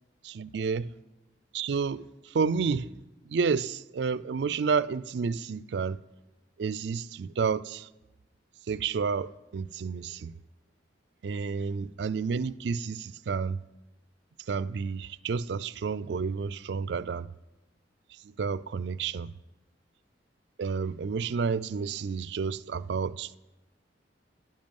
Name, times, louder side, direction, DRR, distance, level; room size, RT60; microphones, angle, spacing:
voice 1, 0.3-0.9 1.5-2.9 3.2-6.0 6.6-7.9 8.7-10.3 11.2-13.6 14.5-17.3 18.2-19.3 20.6-23.4, right 5 dB, 65° right, 0.4 m, -30 dB
11.0 x 10.5 x 5.3 m
head